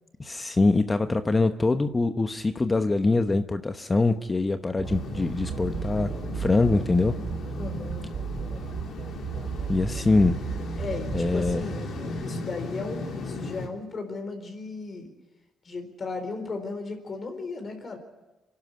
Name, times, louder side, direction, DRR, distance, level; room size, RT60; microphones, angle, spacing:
voice 1, 0.2-7.1 9.7-10.4 11.1-11.6, left 3 dB, 25° left, 8 dB, 0.9 m, -24 dB
sound 1, 4.8-13.7, left 3 dB, 65° left, 3.4 m, -36 dB
sound 2, 4.8-12.4, right 7 dB, 55° right, 1.1 m, -34 dB
voice 2, 7.6-8.1 10.8-11.8 12.2-15.1 15.6-18.0, left 3 dB, 40° left, 6 dB, 4.3 m, -35 dB
26.5 x 11.5 x 9.6 m, 1.1 s
cardioid pair, 90°, 0 cm